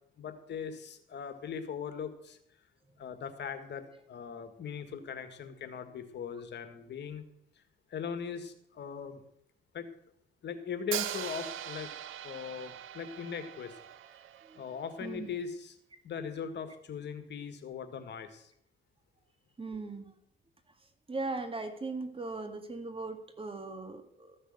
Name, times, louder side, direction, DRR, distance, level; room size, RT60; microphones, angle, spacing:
voice 1, 0.2-2.4 3.0-7.2 7.9-9.2 9.7-9.9 10.4-11.9 12.2-13.8 14.5-15.8 16.0-18.5, left 7 dB, 60° left, 9 dB, 1.8 m, -40 dB
Hi-hat, 10.9-14.9, right 12 dB, 90° right, 0.8 m, -40 dB
voice 2, 15.0-15.3 19.6-20.1 21.1-24.4, right 3 dB, 25° right, 7 dB, 2.0 m, -39 dB
14.0 x 6.6 x 7.9 m, 0.70 s
cardioid pair, 90°, 20 cm